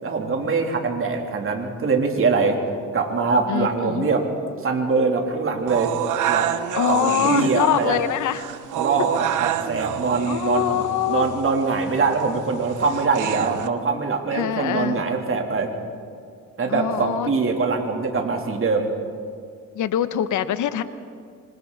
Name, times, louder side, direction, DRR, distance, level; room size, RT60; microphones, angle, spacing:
voice 1, 0.0-2.6 2.9-4.2 4.6-5.9 6.3-8.0 8.7-15.7 16.6-18.9, right 4 dB, 45° right, 2 dB, 3.3 m, -23 dB
voice 2, 3.5-4.1 6.7-8.5 10.2-11.3 14.3-15.1 16.7-17.3 19.7-20.8, left 11 dB, 75° left, 12 dB, 1.1 m, -24 dB
sound 1, 5.7-13.7, right 11 dB, 80° right, 1.1 m, -28 dB
26.0 x 25.0 x 4.1 m, 2.3 s
cardioid pair, 90°, 30 cm